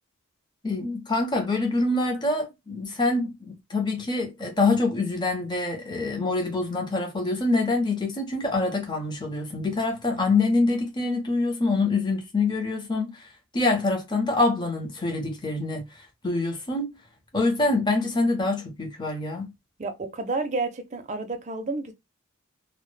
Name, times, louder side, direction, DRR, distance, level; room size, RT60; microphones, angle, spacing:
voice 1, 0.6-16.9 17.3-19.5, left 3 dB, 20° left, 0.5 m, -25 dB
voice 2, 19.8-21.9, right 3 dB, 35° right, 0.4 m, -30 dB
2.0 x 2.0 x 3.0 m
head